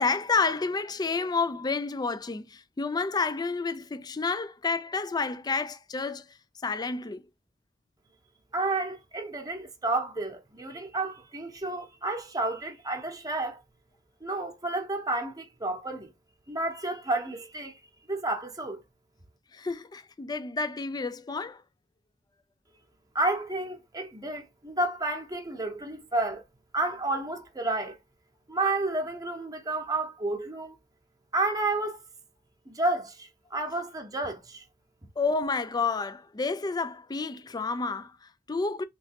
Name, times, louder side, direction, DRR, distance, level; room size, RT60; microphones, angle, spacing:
voice 1, 0.0-6.4 6.6-7.2 19.5-21.6 35.2-38.8, left 4 dB, 20° left, 0.4 m, -30 dB
voice 2, 8.5-13.6 14.2-16.1 16.5-17.8 18.1-18.8 23.1-26.4 26.7-28.0 28.5-30.8 31.3-32.0 32.7-34.6, right 2 dB, 20° right, 0.9 m, -31 dB
3.1 x 3.0 x 2.9 m
head